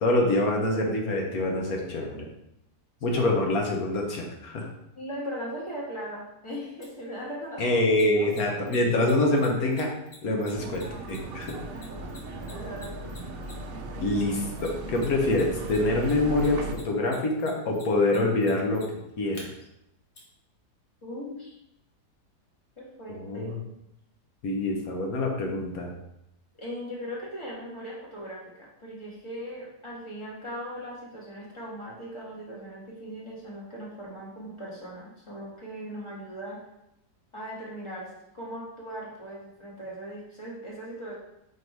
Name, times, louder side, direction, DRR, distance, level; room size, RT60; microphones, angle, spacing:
voice 1, 0.0-2.3 3.0-4.7 7.6-9.9 10.2-11.6 14.0-18.8 19.2-19.5 23.1-23.6 24.4-25.9, left 2 dB, 60° left, 0 dB, 1.5 m, -25 dB
voice 2, 4.9-7.8 8.1-8.8 11.6-12.0 12.5-13.1 21.0-21.6 22.8-23.6 26.6-36.6 37.3-41.2, equal, 20° left, -5 dB, 1.7 m, -39 dB
Mechanisms, 6.8-6.9 7.9-13.8 14.6-15.4 15.7-19.4 20.1-20.2, left 3 dB, 45° left, 1.5 m, -48 dB
sound 1, 10.5-16.7, right 2 dB, 90° right, 0.5 m, -37 dB
5.3 x 3.8 x 4.6 m, 0.83 s
omnidirectional pair, 1.8 m